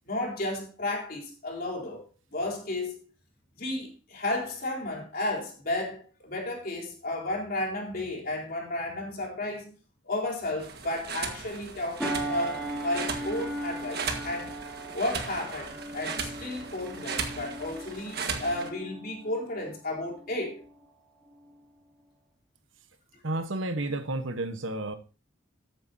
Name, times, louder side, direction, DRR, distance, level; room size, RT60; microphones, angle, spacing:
voice 1, 0.1-3.0 3.5-9.7 10.0-14.5 14.9-20.6, left 1 dB, 45° left, 4.1 m, -33 dB
sound 1, 10.6-18.7, right 5 dB, 50° right, 1.6 m, -37 dB
sound 2, 12.0-20.8 21.3-21.5, right 1 dB, 5° left, 2.8 m, -38 dB
voice 2, 23.2-25.0, right 2 dB, 65° right, 1.2 m, -31 dB
13.5 x 9.3 x 2.8 m
head